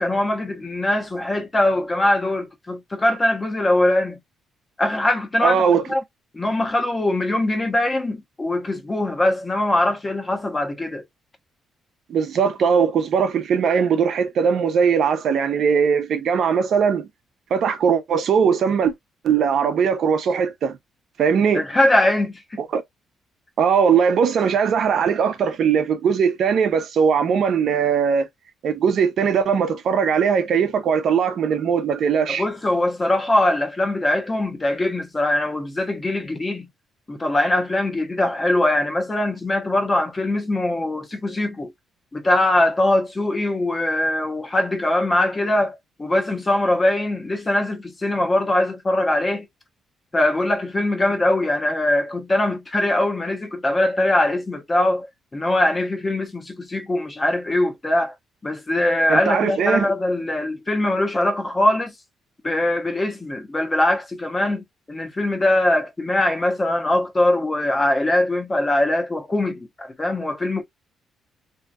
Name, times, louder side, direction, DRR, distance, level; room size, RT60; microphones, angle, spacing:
voice 1, 0.0-4.2 4.8-6.0 6.3-11.0 21.5-22.6 32.3-36.7 37.1-41.7 42.1-49.5 50.1-58.1 58.4-61.9 62.4-70.6, left 1 dB, 25° left, 0.8 m, -22 dB
voice 2, 5.4-5.8 12.1-17.1 17.5-18.9 19.2-20.8 21.2-21.6 22.6-22.8 23.6-28.3 28.6-32.4 59.1-59.9, right 6 dB, 65° right, 0.6 m, -20 dB
2.7 x 2.3 x 2.3 m
cardioid pair, 90°, 0 cm